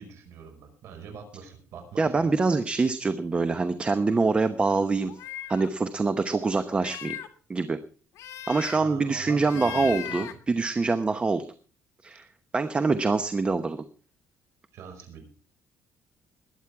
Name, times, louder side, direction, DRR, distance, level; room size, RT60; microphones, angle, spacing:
voice 1, 0.0-2.4 8.6-10.4 14.7-15.2, right 6 dB, 65° right, 3 dB, 5.4 m, -44 dB
voice 2, 2.0-5.1 5.5-7.2 7.5-7.8 8.5-11.5 12.0-12.3 12.5-13.8, right 3 dB, 20° right, 10 dB, 0.9 m, -25 dB
sound 1, 5.0-5.7 6.7-7.3 8.2-8.8 9.4-10.3, left 12 dB, 70° left, 1.8 m, -38 dB
21.0 x 9.2 x 4.8 m, 0.40 s
cardioid pair, 135°, 5 cm